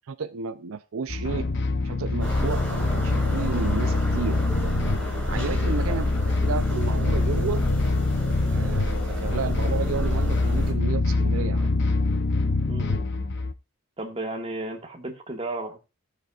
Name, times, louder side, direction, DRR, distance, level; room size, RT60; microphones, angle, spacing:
voice 1, 0.1-1.5 1.8-7.7 8.5-11.7, right 5 dB, 75° right, 0.5 m, -33 dB
sound 1, 1.1-13.5, left 3 dB, 55° left, 0.7 m, -25 dB
sound 2, 2.2-10.7, equal, 5° left, 3.7 m, -31 dB
voice 2, 12.7-13.1 14.0-15.8, right 2 dB, 25° right, 1.8 m, -34 dB
18.0 x 6.7 x 2.4 m
head